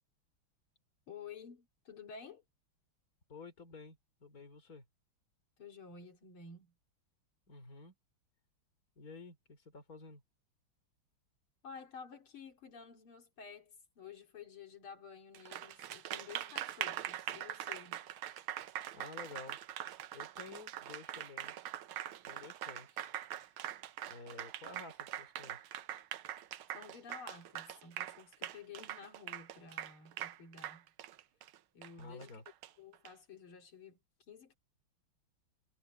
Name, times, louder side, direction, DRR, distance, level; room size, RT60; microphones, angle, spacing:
voice 1, 1.1-2.4 5.6-6.8 11.6-18.0 26.7-30.9 31.7-32.3 32.8-34.0 34.3-34.6, left 6 dB, 85° left, 3.5 m, -52 dB
voice 2, 3.3-4.8 7.5-7.9 9.0-10.2 18.9-19.6 20.1-21.5 22.3-23.0 23.5-23.6 24.1-25.6 32.0-32.4, left 4 dB, 45° left, 4.0 m, -51 dB
Applause, 15.3-33.1, right 11 dB, 80° right, 1.7 m, -43 dB
omnidirectional pair, 2.3 m